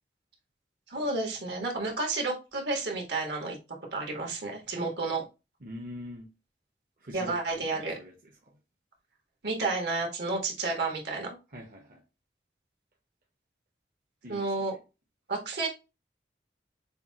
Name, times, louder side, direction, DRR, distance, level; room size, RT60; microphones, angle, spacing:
voice 1, 0.9-3.6 3.9-5.2 7.1-8.0 9.4-11.4 14.3-14.7 15.3-15.7, right 3 dB, 75° right, 1.7 m, -31 dB
voice 2, 5.6-6.3 7.0-8.6 11.5-12.0 14.2-14.7, equal, 50° right, 0.9 m, -44 dB
6.7 x 2.3 x 2.8 m
head